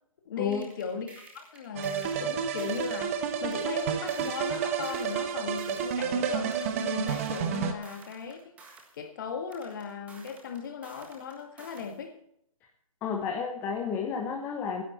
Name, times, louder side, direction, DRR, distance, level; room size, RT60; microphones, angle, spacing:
voice 1, 0.3-8.6 8.9-12.2, left 6 dB, 35° left, 2.0 m, -37 dB
sound 1, 0.5-3.0 3.5-6.0 6.5-9.0 9.5-12.0, right 3 dB, 10° right, 1.5 m, -52 dB
sound 2, 1.8-7.7, right 7 dB, 25° right, 1.1 m, -30 dB
voice 2, 13.0-14.8, left 6 dB, 10° left, 0.9 m, -31 dB
16.5 x 10.5 x 4.3 m
figure-of-eight pair, 155°, 18 cm